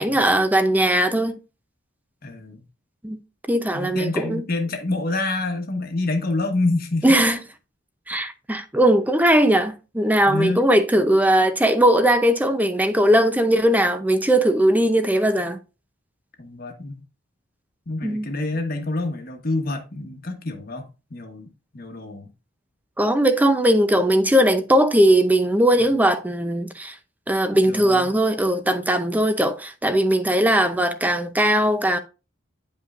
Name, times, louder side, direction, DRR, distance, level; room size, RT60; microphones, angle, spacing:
voice 1, 0.0-1.3 3.0-3.2 3.5-4.4 7.0-7.4 8.1-15.6 18.0-18.3 23.0-27.0 27.3-32.0, right 1 dB, 10° right, 0.6 m, -19 dB
voice 2, 2.2-2.6 3.7-7.1 10.3-10.6 16.4-17.0 17.9-21.5 21.7-22.3 25.8-25.9 27.5-28.1, left 2 dB, 50° left, 1.3 m, -27 dB
9.5 x 5.4 x 2.5 m
head